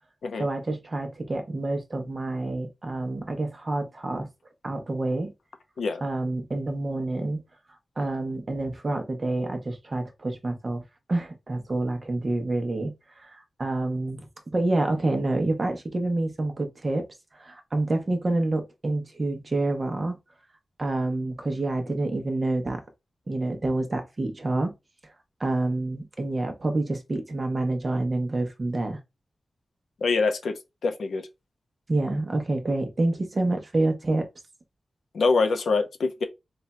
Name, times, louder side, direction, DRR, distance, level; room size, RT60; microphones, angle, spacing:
voice 1, 0.4-4.3 4.6-5.3 6.0-7.4 8.0-10.8 11.1-17.1 17.4-20.2 20.8-22.8 23.3-24.7 25.4-29.0 31.9-34.3, right 2 dB, 40° right, 0.7 m, -28 dB
voice 2, 30.0-31.3 35.1-36.2, left 4 dB, 90° left, 0.6 m, -25 dB
3.3 x 2.2 x 4.1 m
wide cardioid pair, 105°, 0 cm